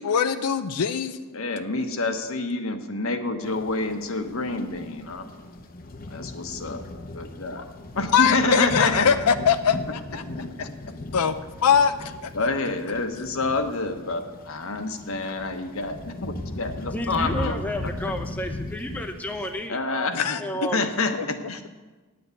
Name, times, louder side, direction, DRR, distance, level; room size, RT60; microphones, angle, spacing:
voice 1, 0.0-1.3 8.1-10.2 10.6-10.7 11.1-11.4 11.6-12.5 20.1-20.7 21.2-21.3, left 7 dB, 90° left, 10 dB, 0.5 m, -22 dB
voice 2, 1.3-5.3 6.1-6.8 7.1-7.6 7.9-9.1 12.3-17.6 19.7-20.4 20.7-21.6, left 3 dB, 65° left, 6 dB, 1.1 m, -27 dB
sound 1, 3.4-19.7, left 2 dB, 40° left, 0.8 m, -37 dB
voice 3, 16.9-19.8 20.4-21.1, equal, 5° left, 3 dB, 0.7 m, -32 dB
9.4 x 7.9 x 9.3 m, 1.3 s
head